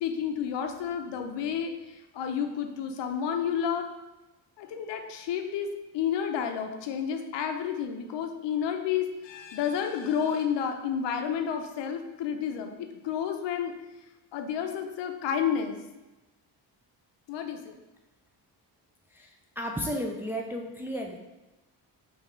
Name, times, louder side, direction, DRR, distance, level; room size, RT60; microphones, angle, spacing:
voice 1, 0.0-3.9 4.6-13.7 14.3-15.8 17.3-17.8, left 8 dB, 75° left, 5 dB, 0.6 m, -31 dB
voice 2, 19.6-21.2, equal, 5° right, 1 dB, 0.3 m, -33 dB
3.7 x 3.3 x 3.1 m, 1.0 s
cardioid pair, 95°, 43 cm